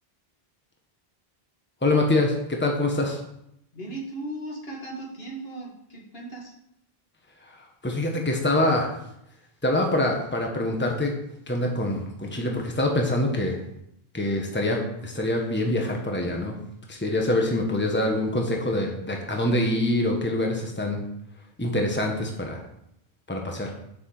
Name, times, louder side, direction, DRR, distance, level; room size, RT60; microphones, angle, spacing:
voice 1, 1.8-3.2 7.5-7.6 7.8-8.9 9.6-11.1 11.5-13.6 14.1-16.6 16.9-21.0 21.6-22.6 23.3-23.8, left 1 dB, 10° left, 1 dB, 1.4 m, -25 dB
voice 2, 3.7-6.5, right 2 dB, 70° left, -3 dB, 2.6 m, -37 dB
7.2 x 6.3 x 7.7 m, 0.77 s
omnidirectional pair, 1.0 m